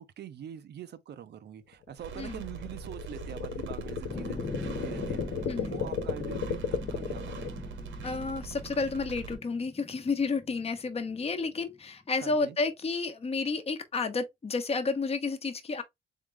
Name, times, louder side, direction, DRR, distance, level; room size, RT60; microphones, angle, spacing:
voice 1, 0.0-7.5 12.2-12.6, right 10 dB, 60° right, 0.6 m, -44 dB
sound 1, 1.7-7.5, left 7 dB, 85° left, 0.8 m, -35 dB
sound 2, 2.0-9.3, right 5 dB, 75° right, 1.2 m, -42 dB
sound 3, 4.1-11.9, left 3 dB, 15° left, 0.4 m, -43 dB
voice 2, 5.5-5.8 8.0-15.8, left 4 dB, 30° left, 0.9 m, -31 dB
3.6 x 3.6 x 3.2 m
cardioid pair, 90°, 20 cm